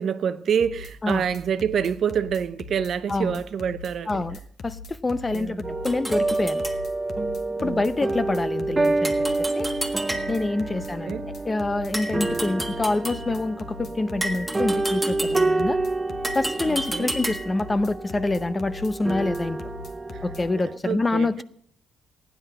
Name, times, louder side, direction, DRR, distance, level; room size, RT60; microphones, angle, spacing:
voice 1, 0.0-4.2 5.3-5.8 7.6-7.8 10.7-11.3 16.7-17.1 20.1-20.2 20.8-21.4, right 7 dB, 60° right, 0.7 m, -27 dB
sound 1, 0.6-20.4, left 4 dB, 60° left, 1.1 m, -40 dB
voice 2, 4.1-6.6 7.6-9.1 9.5-9.7 10.3-11.1 11.4-15.8 16.3-19.6 20.2-21.4, left 2 dB, 20° left, 0.6 m, -26 dB
sound 2, 5.6-20.8, right 2 dB, 20° right, 0.6 m, -28 dB
sound 3, 5.8-6.8 9.0-10.6 11.9-13.3 14.2-15.7 16.2-17.6, right 1 dB, ahead, 1.6 m, -32 dB
15.0 x 10.0 x 5.5 m
cardioid pair, 90°, 0 cm